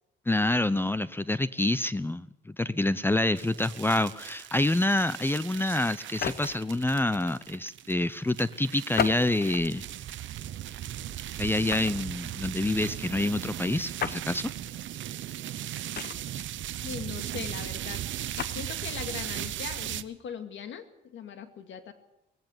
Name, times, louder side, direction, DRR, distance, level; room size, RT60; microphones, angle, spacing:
voice 1, 0.3-9.8 11.4-14.5, left 2 dB, 10° left, 16 dB, 0.7 m, -27 dB
sound 1, 3.4-20.0, right 12 dB, 70° right, 0.9 m, -38 dB
sound 2, 6.0-6.7 8.9-9.7 10.3-10.5 11.7-12.1 14.0-14.2 15.9-16.5 18.2-18.6, left 8 dB, 55° left, 1.1 m, -33 dB
voice 2, 16.8-18.0 18.5-21.9, left 8 dB, 70° left, 8 dB, 2.3 m, -40 dB
19.0 x 16.0 x 9.0 m, 0.90 s
cardioid pair, 90°, 20 cm